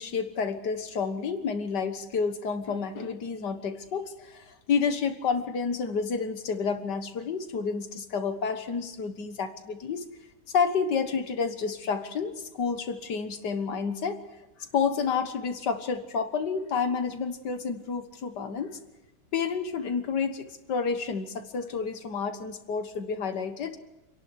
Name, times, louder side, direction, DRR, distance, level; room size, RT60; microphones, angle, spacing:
voice 1, 0.0-10.0 10.5-14.2 14.7-18.8 19.3-23.8, left 5 dB, 75° left, 8 dB, 2.0 m, -30 dB
28.0 x 11.5 x 9.7 m, 1.0 s
omnidirectional pair, 1.9 m